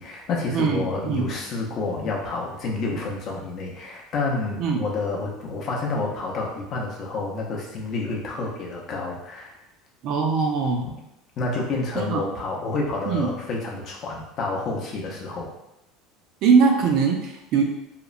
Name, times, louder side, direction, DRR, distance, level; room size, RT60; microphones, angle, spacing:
voice 1, 0.0-9.6 11.4-15.5, left 3 dB, 35° left, -2 dB, 0.5 m, -29 dB
voice 2, 0.5-1.3 4.6-4.8 10.0-10.8 12.0-12.2 13.1-13.3 16.4-17.6, right 5 dB, 50° right, 2 dB, 0.4 m, -21 dB
2.9 x 2.0 x 2.4 m, 0.85 s
cardioid pair, 155°, 0 cm